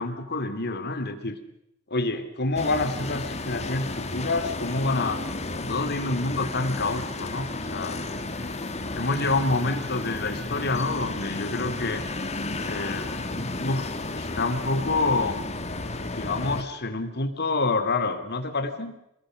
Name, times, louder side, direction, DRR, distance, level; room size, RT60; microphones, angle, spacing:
voice 1, 0.0-1.4 1.9-5.2 5.6-8.0 8.9-12.0 12.6-15.4 16.1-18.9, left 3 dB, 50° left, 9 dB, 2.6 m, -27 dB
sound 1, 2.6-16.6, left 2 dB, 30° left, 1.8 m, -33 dB
27.0 x 20.5 x 6.4 m, 0.80 s
head